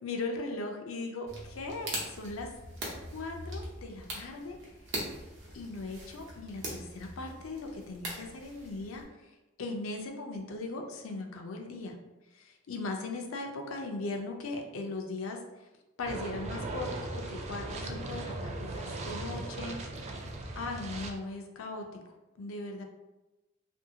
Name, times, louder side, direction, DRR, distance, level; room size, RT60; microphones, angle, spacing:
voice 1, 0.0-2.5 3.1-4.6 5.5-9.3 9.6-12.0 12.3-15.4 16.0-20.1 20.6-22.8, left 2 dB, 90° left, 3 dB, 0.5 m, -39 dB
sound 1, 1.3-9.0, right 1 dB, 65° right, 0.8 m, -42 dB
sound 2, 16.0-21.1, right 2 dB, 35° right, 0.3 m, -38 dB
2.6 x 2.6 x 2.7 m, 1.0 s
head